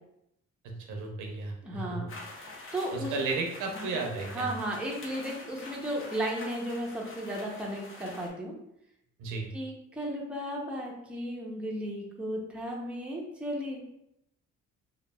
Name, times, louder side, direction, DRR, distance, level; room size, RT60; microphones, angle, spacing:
voice 1, 0.6-2.1 2.9-4.5 9.2-9.5, right 3 dB, 85° right, 2 dB, 0.6 m, -34 dB
voice 2, 1.6-3.1 3.7-3.9 4.3-8.5 9.5-13.9, equal, 5° right, -2 dB, 0.6 m, -35 dB
sound 1, 2.1-8.3, left 2 dB, 45° left, 0.7 m, -46 dB
3.0 x 2.3 x 2.2 m, 0.79 s
cardioid pair, 90°, 30 cm